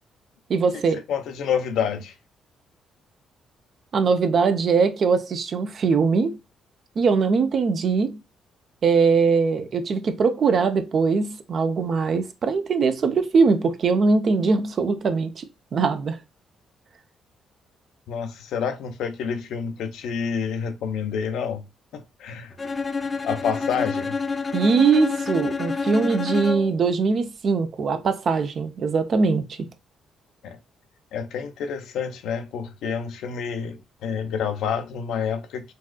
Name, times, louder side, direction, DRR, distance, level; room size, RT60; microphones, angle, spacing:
voice 1, 0.5-1.0 3.9-6.4 7.0-8.2 8.8-15.4 15.7-16.2 24.5-29.7, right 4 dB, 55° right, 0.6 m, -21 dB
voice 2, 1.1-2.1 18.1-21.6 21.9-22.6 23.2-24.2 30.4-30.6 31.1-35.7, left 7 dB, 80° left, 0.6 m, -28 dB
Bowed string instrument, 22.6-26.8, left 4 dB, 30° left, 0.5 m, -28 dB
4.0 x 2.4 x 2.3 m
cardioid pair, 90°, 0 cm